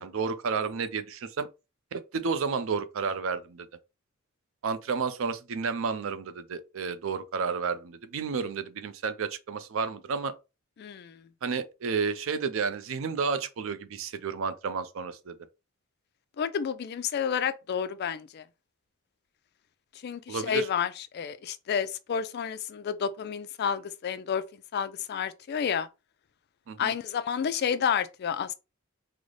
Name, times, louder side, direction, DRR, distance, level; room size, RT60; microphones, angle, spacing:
voice 1, 0.0-1.5 1.9-3.7 4.6-10.3 11.4-15.4 20.3-20.7 26.7-26.9, right 5 dB, 70° right, 0.5 m, -31 dB
voice 2, 10.8-11.2 16.4-18.4 20.0-24.4 24.7-25.9 26.8-28.5, left 7 dB, 50° left, 0.3 m, -30 dB
3.8 x 2.0 x 3.2 m
head